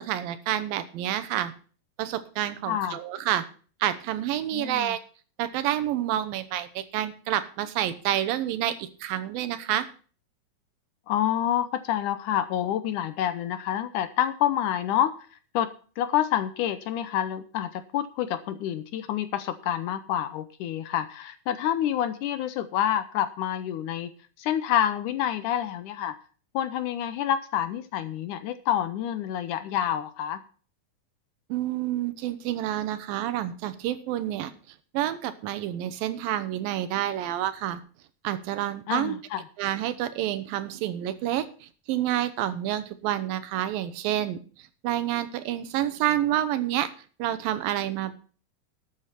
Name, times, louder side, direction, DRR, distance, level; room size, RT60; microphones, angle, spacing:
voice 1, 0.0-1.5 2.0-3.4 3.8-5.0 5.4-9.9 31.5-34.5 34.9-37.8 38.2-39.2 39.6-44.4 44.8-46.9 47.2-48.1, right 12 dB, 90° right, 13 dB, 2.7 m, -28 dB
voice 2, 2.7-3.0 4.5-4.9 11.1-15.1 15.5-15.7 16.0-24.1 24.4-26.1 26.5-30.4 38.9-39.4, left 11 dB, 75° left, 11 dB, 2.0 m, -28 dB
12.5 x 8.1 x 5.7 m, 0.40 s
omnidirectional pair, 4.1 m